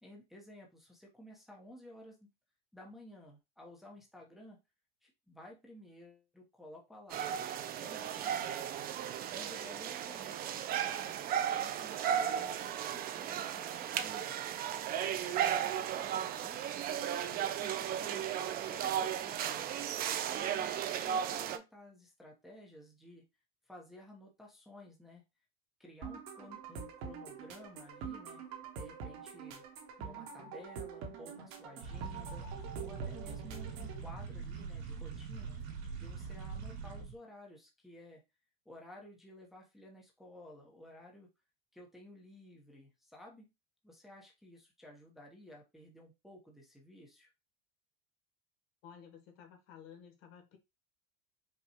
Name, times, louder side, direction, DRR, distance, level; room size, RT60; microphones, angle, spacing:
voice 1, 0.0-2.3 2.7-4.6 5.0-7.5 7.8-8.7 9.3-12.6 12.9-14.3 15.2-16.8 17.3-19.8 20.3-23.2 23.7-25.2 25.8-29.6 30.0-32.5 32.8-35.6 36.0-38.2 38.6-41.3 41.7-43.5 43.8-47.3, left 1 dB, ahead, 0.8 m, -54 dB
sound 1, 7.1-21.6, right 9 dB, 30° right, 0.4 m, -35 dB
sound 2, 26.0-34.0, right 6 dB, 60° right, 1.3 m, -45 dB
sound 3, 31.8-37.2, right 5 dB, 80° right, 2.0 m, -43 dB
voice 2, 48.8-50.6, left 8 dB, 70° left, 1.3 m, -54 dB
5.2 x 2.3 x 2.9 m
supercardioid pair, 130°, 31 cm